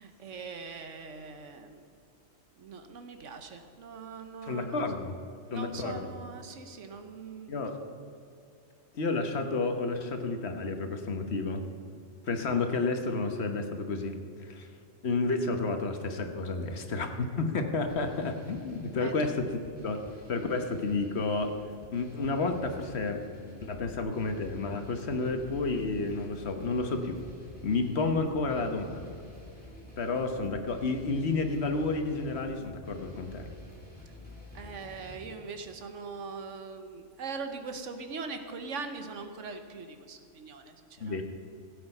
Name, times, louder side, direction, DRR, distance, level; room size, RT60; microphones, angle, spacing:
voice 1, 0.0-1.8 2.6-4.8 5.5-7.5 19.0-19.3 28.5-28.8 34.0-34.1 34.5-41.2, right 4 dB, 75° right, 7 dB, 1.3 m, -41 dB
voice 2, 4.4-5.2 5.5-6.1 7.5-7.7 8.9-11.7 12.3-14.7 15.0-20.0 20.3-21.5 21.9-23.2 23.6-27.2 27.6-29.1 30.0-33.5 41.0-41.2, left 3 dB, 60° left, 6 dB, 1.3 m, -31 dB
sound 1, 17.9-35.3, left 1 dB, 5° left, 2.5 m, -49 dB
16.5 x 8.1 x 5.4 m, 2.5 s
omnidirectional pair, 1.3 m